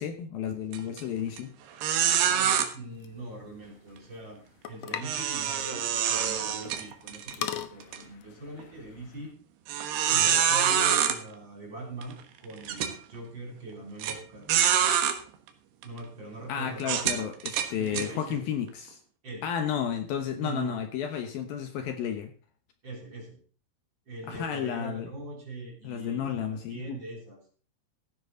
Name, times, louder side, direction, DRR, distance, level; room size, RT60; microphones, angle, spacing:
voice 1, 0.0-1.5 16.5-19.0 19.4-22.3 24.3-25.1 25.8-27.0, left 8 dB, 70° left, 6 dB, 2.7 m, -32 dB
sound 1, 0.7-1.0 1.4-1.5 1.8-2.7 5.0-7.3 7.8-8.0 8.6-8.7 9.7-11.2 12.0-12.1 12.7-12.9 14.0-14.1 14.5-15.2 15.8-16.0 16.8-18.1, right 9 dB, 75° right, 3.4 m, -25 dB
voice 2, 2.2-4.4 4.7-9.3 10.1-14.5 15.8-17.4 17.8-18.4 19.2-19.5 20.4-20.8 22.8-23.4 24.1-27.4, right 2 dB, 30° right, -1 dB, 3.6 m, -41 dB
sound 2, 2.9-9.3, left 9 dB, 85° left, 1.5 m, -42 dB
15.5 x 10.5 x 3.9 m, 0.38 s
omnidirectional pair, 4.8 m